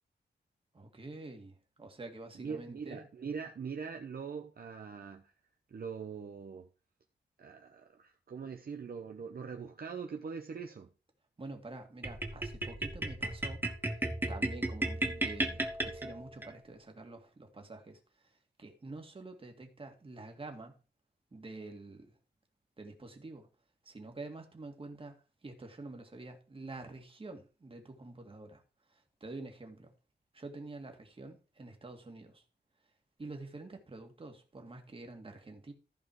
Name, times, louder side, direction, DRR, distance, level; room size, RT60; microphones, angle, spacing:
voice 1, 0.7-3.1 11.4-13.6 14.3-20.7 21.3-22.1 22.8-23.5 23.8-28.6 28.9-29.9 30.3-32.4 33.2-35.7, right 2 dB, 30° right, 2.1 m, -47 dB
voice 2, 2.3-5.3 5.7-6.7 7.4-10.9, right 6 dB, 55° right, 0.9 m, -42 dB
sound 1, 12.0-16.5, right 1 dB, 10° right, 1.3 m, -35 dB
14.5 x 4.9 x 4.7 m
wide cardioid pair, 160°, 18 cm